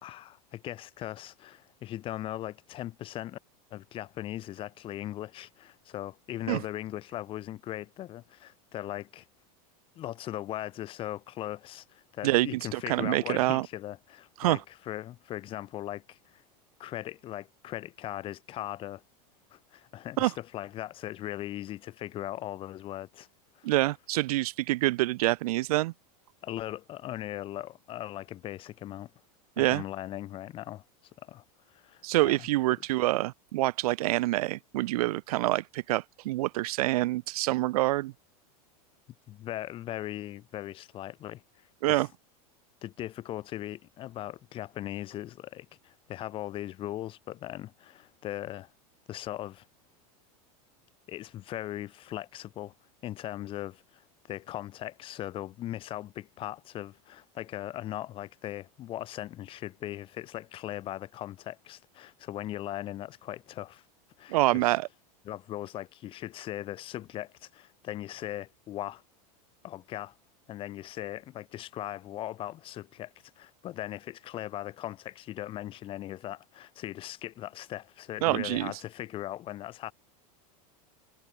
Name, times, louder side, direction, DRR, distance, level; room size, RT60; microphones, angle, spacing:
voice 1, 0.0-3.4 3.7-9.2 9.9-16.4 16.8-19.0 19.5-23.3 23.5-23.7 26.4-29.1 29.6-30.8 31.2-31.4 31.7-32.5 39.3-42.0 42.8-48.7 49.1-49.7 51.1-52.7 53.0-63.8 64.2-64.8 65.2-69.0 69.6-70.2 70.5-79.9, left 13 dB, 30° left, 1.2 m, -39 dB
voice 2, 12.2-13.7 14.4-14.6 20.2-20.3 23.6-25.9 29.6-29.8 32.0-38.1 41.8-42.1 64.3-64.9 78.2-78.7, right 18 dB, 80° right, 0.5 m, -26 dB
supercardioid pair, 160°, 19 cm